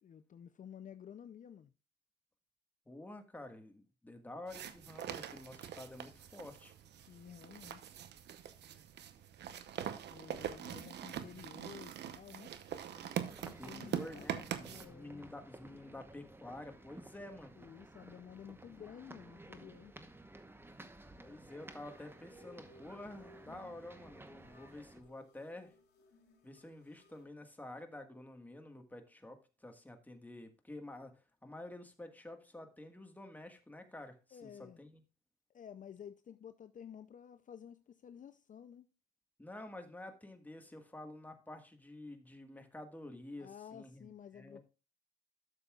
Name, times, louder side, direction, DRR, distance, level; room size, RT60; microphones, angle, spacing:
voice 1, 0.0-1.7 7.1-7.9 10.1-12.5 13.4-15.2 17.6-19.9 34.3-34.8 35.5-38.9 43.4-44.6, left 8 dB, 50° left, 0.5 m, -52 dB
voice 2, 2.9-6.7 13.6-17.6 21.2-25.7 26.4-35.0 39.4-44.6, left 1 dB, 10° left, 1.6 m, -50 dB
sound 1, 4.5-14.8, right 10 dB, 80° right, 0.9 m, -43 dB
sound 2, 12.7-25.0, right 2 dB, 15° right, 1.0 m, -55 dB
sound 3, 21.6-27.2, left 2 dB, 85° left, 3.2 m, -63 dB
12.5 x 6.9 x 2.4 m
cardioid pair, 90°, 17 cm